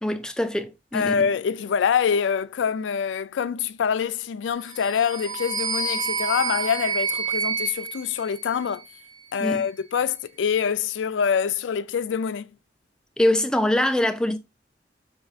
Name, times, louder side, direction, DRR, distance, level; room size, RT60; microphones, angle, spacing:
voice 1, 0.0-1.2 9.4-9.6 13.2-14.4, left 1 dB, 5° left, 0.4 m, -23 dB
voice 2, 0.9-8.8 9.3-12.5, left 7 dB, 85° left, 0.4 m, -25 dB
sound 1, 4.7-9.0, right 5 dB, 85° right, 1.8 m, -29 dB
5.3 x 3.4 x 2.4 m
head